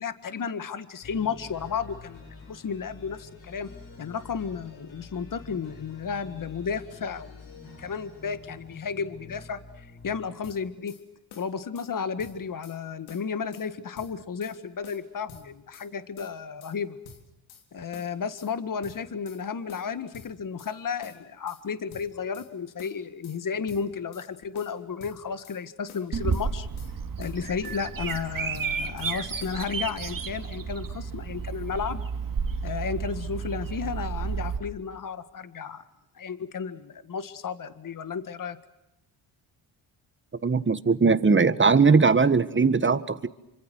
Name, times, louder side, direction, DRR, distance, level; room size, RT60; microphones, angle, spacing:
voice 1, 0.0-3.7 4.0-10.9 11.4-17.0 17.7-26.7 27.2-32.0 32.6-35.8 36.1-38.6, left 6 dB, 40° left, 12 dB, 1.8 m, -33 dB
sound 1, 1.0-10.8, left 3 dB, 70° left, 7.8 m, -47 dB
sound 2, 10.4-11.0 11.3-11.9 12.2-12.8 13.1-13.7 14.0-14.6 14.8-15.9 16.2-16.8 17.0-17.7 17.9-18.5 18.8-19.4 19.7-20.7 21.0-21.6 21.9-22.5 22.8-23.4 23.7-24.3 24.5-25.6 25.9-26.5 26.8-27.4 27.6-28.2 28.5-29.1 29.4-29.6, left 6 dB, 85° left, 3.8 m, -49 dB
Bird vocalization bird call bird song, 26.1-34.6, right 5 dB, 45° right, 2.6 m, -32 dB
voice 2, 40.4-43.3, right 4 dB, 25° right, 13 dB, 1.5 m, -20 dB
27.0 x 25.5 x 6.3 m, 0.93 s
cardioid pair, 75°, 47 cm